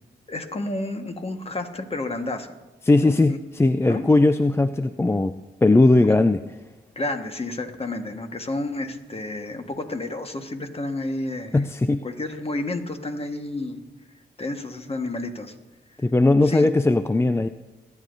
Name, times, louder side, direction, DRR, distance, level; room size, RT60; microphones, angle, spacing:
voice 1, 0.3-2.5 3.0-3.4 3.8-4.0 6.0-6.2 6.9-11.6 12.0-13.8 14.4-15.5 16.0-16.1 16.4-16.7, left 2 dB, 30° left, 6 dB, 1.4 m, -30 dB
voice 2, 2.9-5.3 5.6-6.4 11.5-12.0 16.0-17.5, left 2 dB, 15° left, 10 dB, 0.4 m, -18 dB
22.0 x 9.8 x 2.6 m, 1.1 s
cardioid pair, 60°, 19 cm